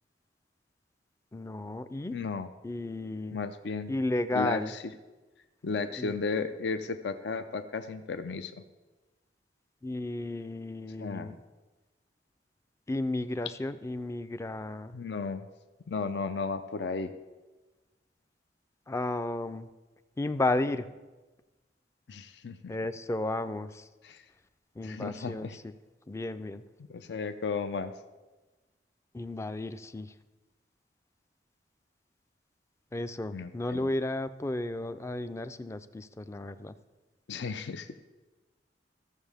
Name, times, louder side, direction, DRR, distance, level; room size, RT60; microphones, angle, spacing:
voice 1, 1.3-2.1 2.6-3.4 3.9-4.7 6.0-6.1 9.8-11.4 12.9-14.9 18.9-19.7 20.2-20.9 22.7-23.8 24.8-25.5 26.1-26.6 29.1-30.1 32.9-36.8, left 2 dB, 15° left, 12 dB, 0.4 m, -33 dB
voice 2, 2.1-2.5 3.3-3.9 4.3-4.8 5.6-8.5 11.0-11.4 14.9-15.5 15.9-17.1 22.1-22.6 24.0-24.2 24.8-25.6 26.9-27.9 33.3-33.9 37.3-37.9, left 4 dB, 70° left, 10 dB, 0.5 m, -34 dB
14.5 x 7.2 x 3.5 m, 1.2 s
head